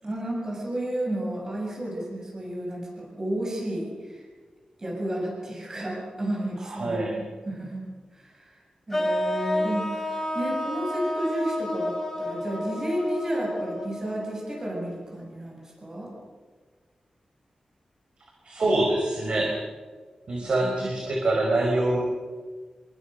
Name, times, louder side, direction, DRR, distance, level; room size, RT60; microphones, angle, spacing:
voice 1, 0.0-4.2 4.8-8.5 8.9-16.1 20.4-20.9, right 1 dB, 25° right, -2 dB, 7.8 m, -32 dB
voice 2, 6.7-7.1 18.4-19.5 20.3-22.0, right 2 dB, 55° right, 0 dB, 5.2 m, -25 dB
sound 1, 8.9-15.0, left 1 dB, 15° left, 4.4 m, -31 dB
27.5 x 24.0 x 6.7 m, 1.4 s
wide cardioid pair, 180°, 2 cm